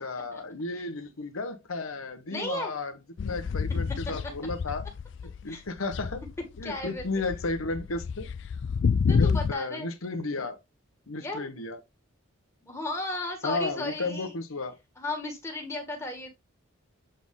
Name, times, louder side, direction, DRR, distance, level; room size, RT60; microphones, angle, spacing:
voice 1, 0.0-2.9 3.2-4.8 5.4-6.2 6.6-8.3 9.1-10.6 11.1-11.8 13.4-14.7, left 3 dB, 85° left, 1.0 m, -33 dB
voice 2, 2.3-2.7 5.5-5.6 6.6-7.0 9.1-9.9 11.2-11.5 12.6-14.4 15.0-16.3, left 2 dB, 15° left, 2.0 m, -35 dB
sound 1, 3.2-5.5 5.8-9.5, left 5 dB, 60° left, 0.3 m, -28 dB
7.7 x 4.3 x 3.6 m
head